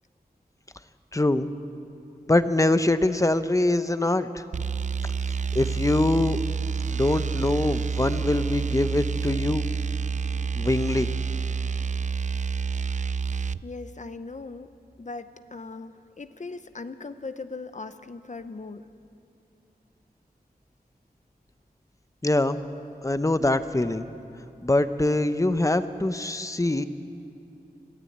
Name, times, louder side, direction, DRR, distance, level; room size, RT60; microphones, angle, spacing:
voice 1, 1.1-1.5 2.3-4.4 5.5-6.4 6.9-9.6 10.6-11.1 22.2-22.6 23.0-24.1 24.6-26.8, left 2 dB, 20° left, 11 dB, 0.8 m, -23 dB
sound 1, 4.5-13.6, right 5 dB, 50° right, 0.4 m, -28 dB
voice 2, 13.6-14.7 15.0-18.9, left 3 dB, 50° left, 11 dB, 0.8 m, -39 dB
22.0 x 14.5 x 8.6 m, 2.6 s
wide cardioid pair, 80°, 16 cm